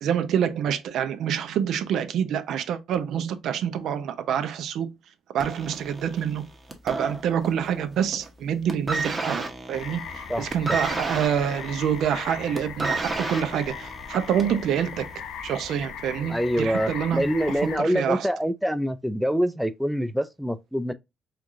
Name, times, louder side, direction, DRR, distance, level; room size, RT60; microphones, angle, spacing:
voice 1, 0.0-4.9 5.3-6.4 6.8-15.1 15.4-17.2 17.6-18.3, right 8 dB, 70° right, 0.5 m, -27 dB
sound 1, 5.4-7.7 8.0-8.4 8.7-14.6 15.5-15.6, right 3 dB, 25° right, 0.9 m, -32 dB
sound 2, 9.7-17.8, left 7 dB, 75° left, 0.7 m, -38 dB
voice 2, 10.3-10.8 16.3-20.9, equal, ahead, 0.3 m, -25 dB
4.5 x 2.4 x 2.6 m
cardioid pair, 85°, 0 cm